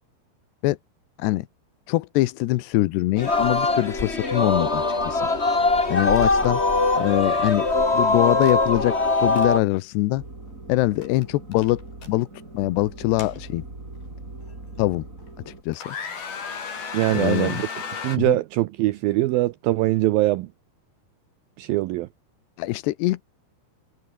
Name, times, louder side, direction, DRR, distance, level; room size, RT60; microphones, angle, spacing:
voice 1, 1.9-5.3 5.9-6.6 7.0-7.7 7.9-10.2 10.7-12.3 12.5-13.6 14.8-15.1 15.5-16.0 17.1-17.6 18.1-18.4 22.6-23.2, left 18 dB, 80° left, 2.9 m, -23 dB
Singing, 3.2-9.6, left 3 dB, 15° left, 2.7 m, -22 dB
sound 1, 6.2-6.3 6.6-6.8 8.4-8.6 9.1-9.5 11.0-11.2 11.5-12.1 12.9-13.9 14.5-14.6 15.2-15.5 15.7-18.2, left 6 dB, 60° left, 6.6 m, -34 dB
sound 2, 10.2-15.6, right 2 dB, 20° right, 5.0 m, -41 dB
voice 2, 16.9-17.7 18.0-20.5 21.6-22.1, right 17 dB, 85° right, 2.1 m, -22 dB
omnidirectional pair, 4.9 m